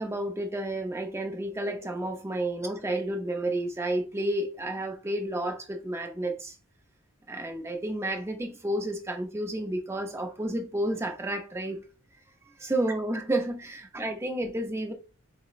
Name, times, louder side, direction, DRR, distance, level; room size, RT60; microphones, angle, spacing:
voice 1, 0.0-6.5 7.3-11.8 12.6-14.9, right 1 dB, 10° right, 0.5 m, -31 dB
4.2 x 2.0 x 2.3 m
head